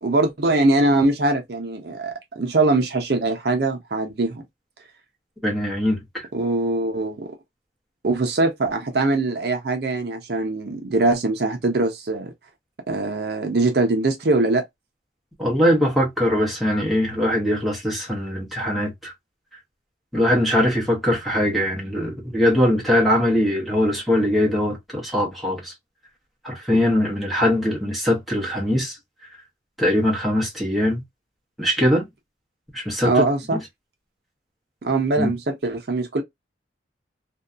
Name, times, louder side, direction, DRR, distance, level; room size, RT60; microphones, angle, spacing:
voice 1, 0.0-4.4 6.3-7.3 8.0-12.3 12.9-14.6 33.0-33.6 34.8-36.2, right 2 dB, 55° right, 0.5 m, -22 dB
voice 2, 5.4-6.3 15.4-19.1 20.1-25.7 26.4-29.0 29.8-31.0 31.6-32.0 32.7-33.2 35.2-35.3, left 1 dB, ahead, 0.8 m, -21 dB
2.6 x 2.2 x 2.4 m
head